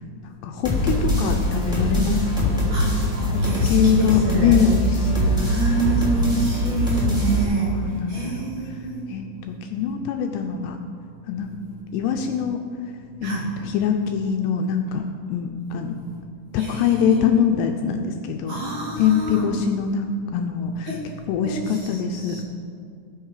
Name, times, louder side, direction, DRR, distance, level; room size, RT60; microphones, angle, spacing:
voice 1, 0.4-2.6 3.2-5.5 5.8-6.4 7.6-8.5 9.1-10.8 11.3-11.6 11.9-12.6 13.2-15.0 15.3-16.0 16.5-18.6 19.0-21.0 21.3-22.4, left 7 dB, 80° left, 4 dB, 2.5 m, -23 dB
sound 1, 0.6-7.4, equal, ahead, 1.9 m, -22 dB
voice 2, 2.7-4.5 5.4-7.7 8.1-9.0 13.2-13.5 16.6-17.2 18.5-19.5 20.9-21.0 21.4-22.4, right 3 dB, 60° right, -5 dB, 2.2 m, -27 dB
18.5 x 6.4 x 4.8 m, 2.4 s
omnidirectional pair, 5.2 m